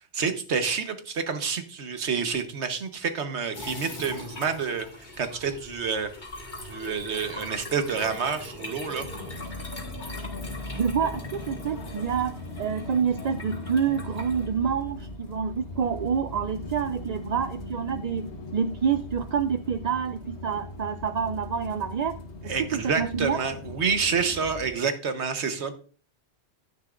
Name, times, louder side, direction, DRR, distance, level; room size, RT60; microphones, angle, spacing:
voice 1, 0.1-4.9 5.2-6.1 6.6-9.1 22.5-25.8, right 5 dB, 80° right, 8 dB, 1.4 m, -28 dB
sound 1, 3.5-14.5, left 1 dB, 45° left, 2.1 m, -41 dB
sound 2, 9.0-24.7, left 1 dB, 85° left, 1.6 m, -39 dB
voice 2, 10.7-22.1 22.4-22.5 23.0-23.4, right 7 dB, 55° right, 9 dB, 0.4 m, -28 dB
11.0 x 10.0 x 2.5 m, 0.40 s
omnidirectional pair, 1.1 m